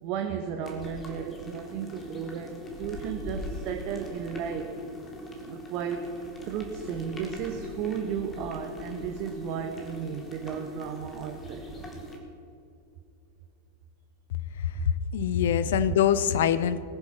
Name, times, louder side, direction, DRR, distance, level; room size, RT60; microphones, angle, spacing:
voice 1, 0.0-4.7 5.5-6.2 6.4-11.8 14.7-14.9 15.7-15.9, right 8 dB, 40° right, 5 dB, 1.0 m, -34 dB
sound 1, 0.6-12.2, left 1 dB, 20° left, 2.3 m, -41 dB
voice 2, 15.1-16.8, left 9 dB, 60° left, 14 dB, 0.6 m, -24 dB
20.5 x 7.5 x 6.0 m, 2.5 s
figure-of-eight pair, 90°, 0 cm